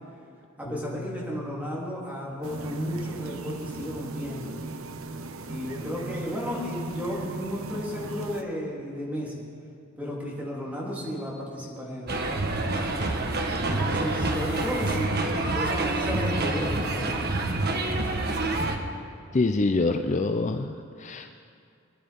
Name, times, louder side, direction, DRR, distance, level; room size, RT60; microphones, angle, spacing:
Piano, 0.6-5.1, left 1 dB, 65° left, 2.1 m, -45 dB
voice 1, 0.6-4.6 5.5-9.4 10.0-12.9 13.5-15.1 15.5-17.2, equal, 5° right, -5 dB, 3.4 m, -34 dB
sound 1, 2.4-8.4, right 2 dB, 80° right, 0.9 m, -37 dB
sound 2, 12.1-18.8, right 2 dB, 50° right, 1.3 m, -27 dB
voice 2, 19.3-21.3, left 3 dB, 35° left, 7 dB, 0.5 m, -25 dB
23.0 x 11.0 x 5.3 m, 2.4 s
head